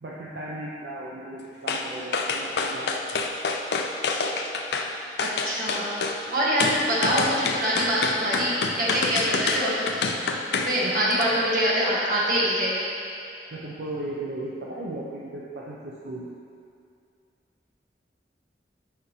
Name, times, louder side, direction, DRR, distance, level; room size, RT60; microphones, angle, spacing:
voice 1, 0.0-3.2 10.8-11.4 13.5-16.3, right 1 dB, 70° right, -5 dB, 0.7 m, -36 dB
sound 1, 1.7-1.9 2.1-4.9 5.2-6.2 6.6-10.8 11.1-11.2, left 4 dB, 70° left, 0.5 m, -27 dB
voice 2, 5.2-6.0 6.3-10.0 10.5-12.8, equal, 50° right, -7 dB, 1.5 m, -24 dB
8.6 x 4.9 x 3.2 m, 2.4 s
head